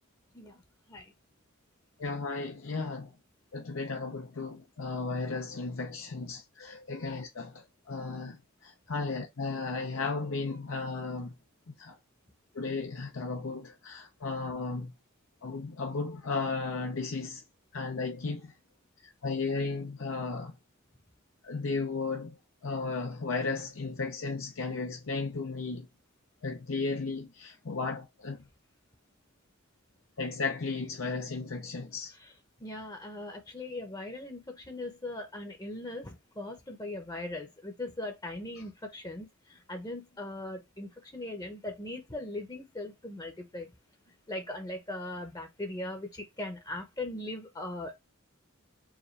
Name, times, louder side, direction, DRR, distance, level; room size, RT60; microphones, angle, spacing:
voice 1, 2.0-3.1 3.5-11.3 11.8-12.0 12.5-14.9 15.4-17.4 17.7-18.5 19.2-20.5 21.4-22.3 22.6-25.9 26.4-28.4 30.2-32.1, left 4 dB, 70° left, 0.6 m, -34 dB
voice 2, 32.6-43.7 44.3-48.0, left 1 dB, 20° left, 0.8 m, -39 dB
4.8 x 2.5 x 3.2 m
head